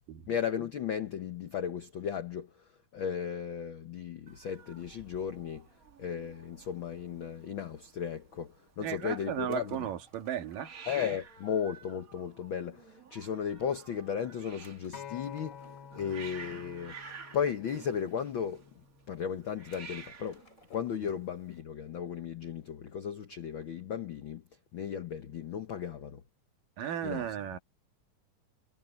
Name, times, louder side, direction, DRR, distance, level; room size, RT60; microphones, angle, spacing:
voice 1, 0.3-2.5 2.9-5.6 6.0-9.8 10.9-15.5 15.9-16.9 17.3-18.6 19.1-20.4 20.7-24.4 24.7-26.2 27.0-27.3, left 8 dB, 85° left, 1.1 m, -35 dB
Hiss, 4.3-21.6, right 5 dB, 35° right, 1.4 m, -52 dB
voice 2, 8.8-10.7 16.0-16.1 21.0-21.1 26.8-27.6, right 10 dB, 85° right, 3.3 m, -35 dB
sound 1, 9.5-11.2 14.6-16.3 17.4-17.5 17.8-17.9 18.7-18.8 19.7-21.4, left 2 dB, 20° left, 8.0 m, -64 dB
Acoustic guitar, 14.9-19.2 20.0-20.1, left 7 dB, 55° left, 3.0 m, -50 dB
omnidirectional pair, 3.8 m